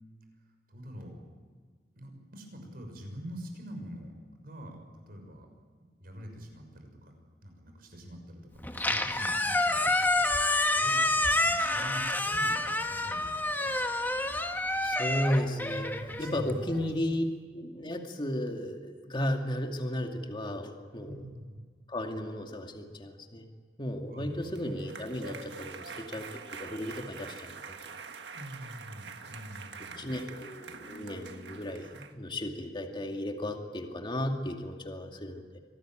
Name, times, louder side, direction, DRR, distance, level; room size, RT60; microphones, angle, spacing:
voice 1, 0.7-1.2 1.9-4.1 4.4-5.5 6.0-7.1 7.4-10.3 10.7-13.8 15.8-16.9 21.0-21.7 24.1-24.5 28.3-30.2, equal, 55° right, 4 dB, 6.4 m, -45 dB
Squeak, 8.6-16.9, left 2 dB, 10° left, 1.6 m, -28 dB
voice 2, 14.8-15.9 16.2-17.2 17.5-21.2 21.9-23.4 23.8-26.3 26.6-27.8 30.0-35.6, left 1 dB, 30° left, 3 dB, 2.4 m, -34 dB
sound 1, 24.3-32.1, right 4 dB, 75° right, 1.7 m, -45 dB
25.5 x 19.0 x 9.1 m, 1.6 s
head